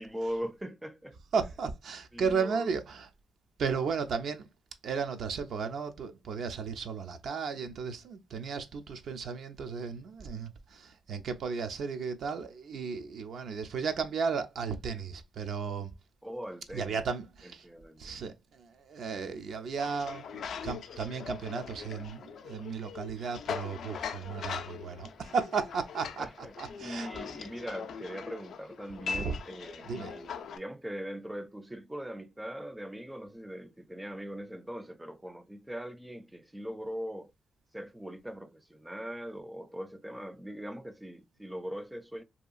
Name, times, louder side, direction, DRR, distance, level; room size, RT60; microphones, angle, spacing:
voice 1, 0.0-1.2 2.1-2.7 16.2-17.0 17.6-18.2 26.2-26.5 26.8-37.3 37.7-42.2, equal, 10° right, 0.4 m, -41 dB
voice 2, 1.3-3.1 3.6-4.5 4.8-15.9 16.7-17.7 18.0-27.1 29.1-29.4 29.8-30.1, right 5 dB, 70° right, 0.4 m, -34 dB
sound 1, 19.8-30.6, left 6 dB, 70° left, 0.3 m, -41 dB
2.7 x 2.4 x 2.3 m
supercardioid pair, 55°, 0 cm